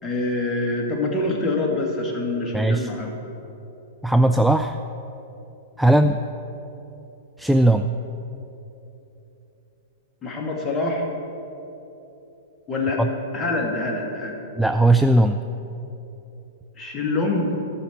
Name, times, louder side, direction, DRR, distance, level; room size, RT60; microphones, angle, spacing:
voice 1, 0.0-3.2 10.2-11.1 12.7-13.0 13.3-14.4 16.8-17.5, left 2 dB, 20° left, 0 dB, 2.0 m, -25 dB
voice 2, 2.5-2.9 4.0-4.8 5.8-6.2 7.4-8.0 13.0-13.1 14.6-15.4, right 1 dB, ahead, 7 dB, 0.3 m, -18 dB
11.5 x 5.3 x 8.6 m, 3.0 s
figure-of-eight pair, 105°, 0 cm